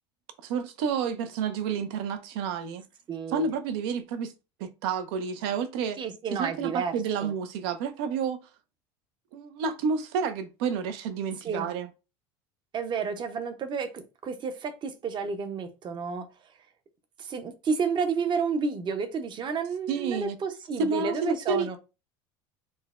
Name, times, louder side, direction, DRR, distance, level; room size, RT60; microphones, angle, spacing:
voice 1, 0.4-2.8 3.3-4.3 4.6-6.0 6.4-8.4 9.3-11.9 19.9-20.4 20.8-21.8, right 5 dB, 75° right, 0.5 m, -30 dB
voice 2, 3.1-3.5 6.0-7.3 11.4-11.7 12.7-16.3 17.2-21.8, right 5 dB, 35° right, 0.6 m, -31 dB
3.8 x 2.1 x 2.4 m
supercardioid pair, 100°, 13 cm